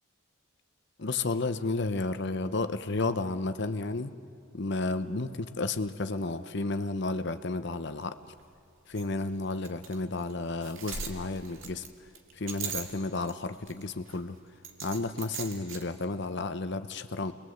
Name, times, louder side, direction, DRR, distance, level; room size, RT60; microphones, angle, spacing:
voice 1, 1.0-4.1 4.5-8.1 8.9-11.8 12.4-14.4 14.8-17.3, left 3 dB, 55° left, 10 dB, 0.9 m, -32 dB
sound 1, 8.0-8.1 8.4-8.5 9.0-9.1 9.6-10.0 10.3-10.4 10.6-13.3 13.6-14.2 14.6-15.8, right 6 dB, 75° right, 2.3 m, -39 dB
29.5 x 21.0 x 8.0 m, 2.3 s
head